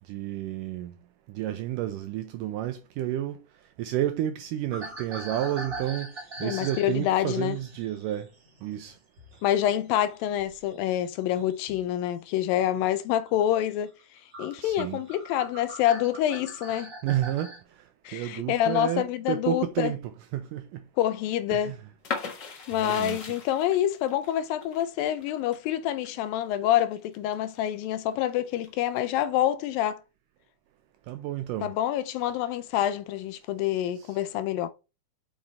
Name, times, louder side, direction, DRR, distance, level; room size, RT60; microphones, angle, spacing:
voice 1, 0.1-0.9 1.3-3.4 3.8-6.1 6.4-8.3 8.6-9.0 14.6-15.0 17.0-17.5 18.1-20.0 20.3-20.8 21.5-21.8 22.8-23.2 31.1-31.7 34.0-34.1, right 12 dB, 85° right, 1.9 m, -30 dB
sound 1, 4.7-9.5 9.8-11.9 12.4-12.8 13.3-13.4 14.0-14.1 14.3-17.6, right 2 dB, 30° right, 1.6 m, -42 dB
voice 2, 6.4-7.6 9.4-13.9 14.4-16.9 18.1-19.9 21.0-21.7 22.7-30.0 31.6-34.7, left 12 dB, 80° left, 2.1 m, -27 dB
sound 2, 22.0-27.7 28.1-29.0, left 5 dB, 65° left, 1.1 m, -38 dB
7.2 x 5.2 x 4.2 m
omnidirectional pair, 4.3 m